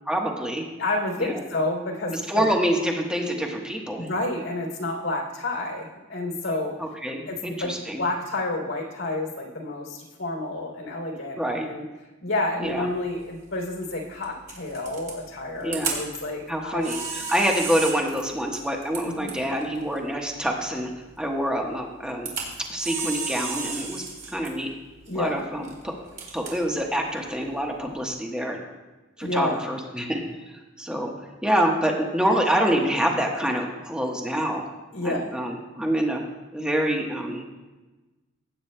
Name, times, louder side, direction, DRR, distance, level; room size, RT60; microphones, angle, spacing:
voice 1, 0.1-0.6 1.2-1.4 2.3-4.1 6.8-8.0 11.4-11.6 12.6-12.8 15.6-16.0 16.5-20.9 21.2-22.3 22.7-24.0 24.3-24.7 25.1-28.6 29.2-30.2 30.8-31.1 31.4-34.6 35.0-36.2 36.5-37.4, equal, 5° right, 0 dB, 1.2 m, -26 dB
voice 2, 0.8-2.4 4.0-6.8 7.3-11.8 12.2-16.9 19.0-19.3 25.1-25.4 29.2-29.6 34.9-35.3, left 2 dB, 90° left, 0 dB, 3.1 m, -30 dB
Camera, 12.6-28.1, right 5 dB, 45° right, 3.3 m, -37 dB
19.5 x 9.1 x 2.2 m, 1.2 s
head